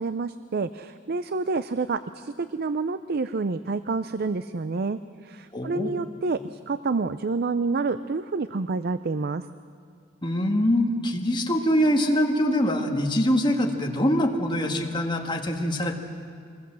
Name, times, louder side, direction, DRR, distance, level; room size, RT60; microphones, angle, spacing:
voice 1, 0.0-9.4, right 4 dB, 50° right, 13 dB, 0.5 m, -28 dB
voice 2, 5.5-5.9 10.2-15.9, equal, 25° left, 2 dB, 1.9 m, -24 dB
25.0 x 20.5 x 7.6 m, 2.3 s
head